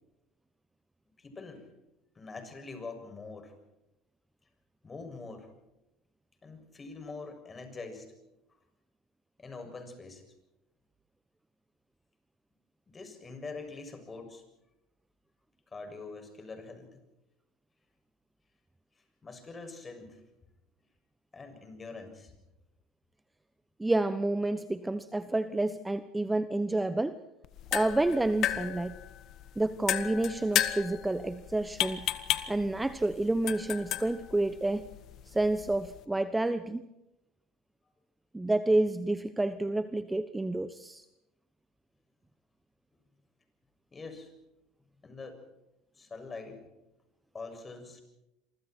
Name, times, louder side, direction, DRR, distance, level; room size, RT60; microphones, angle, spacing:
voice 1, 1.2-1.7 2.1-3.5 4.8-5.5 6.4-8.1 9.4-10.2 12.9-14.4 15.7-17.0 19.2-20.2 21.3-22.3 43.9-44.3 45.0-45.4 45.9-46.6 47.3-48.0, left 3 dB, 25° left, 6 dB, 6.9 m, -44 dB
voice 2, 23.8-27.2 27.7-28.9 29.6-32.1 32.5-34.8 35.3-36.8 38.3-41.0, right 2 dB, 10° right, 13 dB, 1.1 m, -29 dB
sound 1, 27.4-36.0, left 12 dB, 55° left, 1.7 m, -34 dB
27.0 x 25.0 x 4.6 m, 0.90 s
hypercardioid pair, 80°, 0 cm